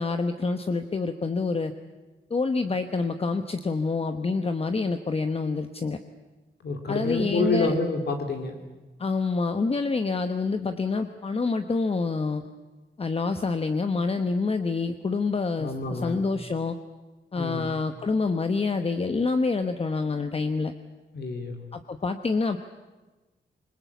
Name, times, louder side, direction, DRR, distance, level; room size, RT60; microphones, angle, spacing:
voice 1, 0.0-1.7 2.3-6.0 6.9-7.7 9.0-12.4 13.0-16.8 17.3-20.7 21.7-22.6, left 4 dB, 30° left, 8 dB, 1.1 m, -27 dB
voice 2, 6.6-8.6 15.6-16.2 17.4-17.7 21.1-21.6, left 3 dB, 60° left, 4 dB, 2.6 m, -28 dB
26.0 x 21.5 x 8.3 m, 1.2 s
wide cardioid pair, 120°, 19 cm